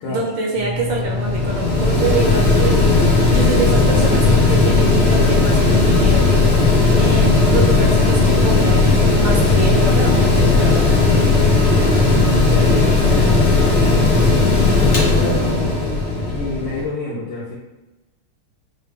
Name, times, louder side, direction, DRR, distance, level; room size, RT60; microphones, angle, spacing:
voice 1, 0.1-2.8 3.3-6.2 7.0-11.0, right 3 dB, 75° right, 0 dB, 1.2 m, -25 dB
Mechanical fan, 0.5-16.8, left 3 dB, 55° left, 0.6 m, -15 dB
voice 2, 12.4-14.3 14.7-17.6, left 3 dB, 75° left, -5 dB, 1.5 m, -28 dB
5.4 x 2.2 x 3.4 m, 1.1 s
omnidirectional pair, 2.3 m